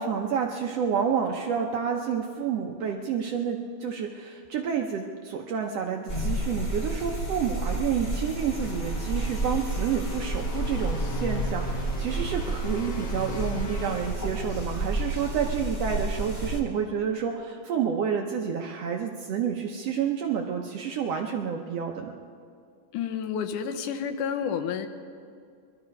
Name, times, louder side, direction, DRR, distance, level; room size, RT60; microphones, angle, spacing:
voice 1, 0.0-22.1, right 7 dB, 75° right, 2 dB, 1.5 m, -29 dB
sound 1, 6.1-16.6, right 1 dB, 25° left, 1.0 m, -30 dB
sound 2, 8.2-14.8, left 3 dB, 55° left, 1.3 m, -40 dB
voice 2, 22.9-24.9, left 7 dB, 80° left, 8 dB, 2.3 m, -30 dB
21.5 x 13.0 x 5.2 m, 2.3 s
omnidirectional pair, 3.7 m